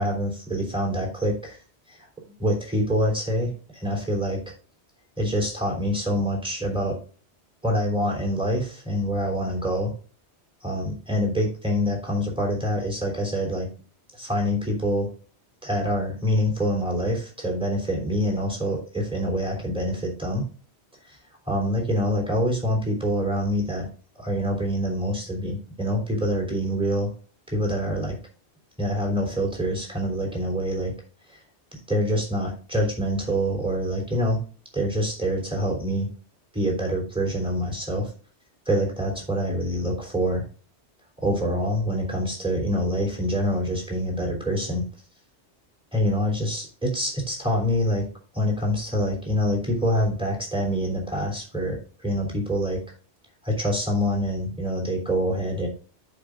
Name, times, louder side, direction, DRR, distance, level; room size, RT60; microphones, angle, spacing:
voice 1, 0.0-1.6 1.9-2.1 2.4-4.4 5.2-7.0 7.6-9.9 10.6-13.7 14.1-15.1 15.6-20.4 21.1-21.2 21.5-27.1 27.5-28.2 28.8-30.9 31.3-31.4 31.7-34.4 34.7-36.1 36.5-38.1 38.6-40.4 41.2-44.8 45.9-48.1 48.3-52.8 53.4-55.7, equal, 5° right, -1 dB, 3.2 m, -26 dB
14.5 x 5.3 x 2.5 m, 0.40 s
omnidirectional pair, 1.2 m